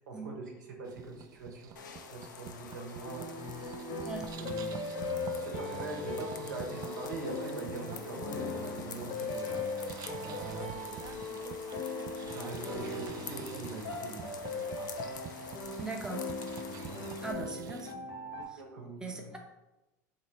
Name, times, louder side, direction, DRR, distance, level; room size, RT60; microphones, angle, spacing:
voice 1, 0.1-3.3 4.4-4.8 5.4-9.9 10.2-10.7 12.3-15.4 16.8-17.1 18.6-19.4, right 3 dB, 80° right, 0 dB, 1.0 m, -43 dB
sound 1, 0.8-17.9, right 8 dB, 40° right, 0.3 m, -48 dB
sound 2, 1.8-17.3, left 6 dB, 85° left, 0.4 m, -48 dB
sound 3, 3.0-18.4, left 3 dB, 60° left, 0.9 m, -39 dB
voice 2, 15.8-16.2 17.2-18.0 18.5-18.6 19.0-19.4, right 3 dB, 5° right, 1 dB, 0.6 m, -40 dB
3.1 x 2.9 x 4.3 m, 0.99 s
hypercardioid pair, 95°, 10 cm